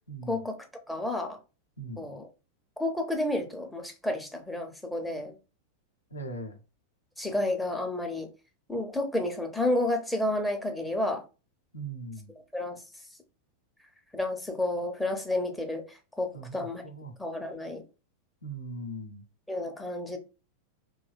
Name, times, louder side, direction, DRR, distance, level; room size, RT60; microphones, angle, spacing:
voice 1, 0.3-0.6 0.9-1.4 2.0-2.3 2.8-5.3 7.2-8.3 8.7-11.2 12.5-12.8 14.1-16.8 17.2-17.8 19.5-20.2, left 1 dB, 5° left, 0.6 m, -31 dB
voice 2, 1.8-2.1 6.1-6.6 11.7-12.3 16.3-17.1 18.4-19.2, right 2 dB, 75° left, 0.6 m, -40 dB
2.5 x 2.2 x 2.3 m
figure-of-eight pair, 90°, 0 cm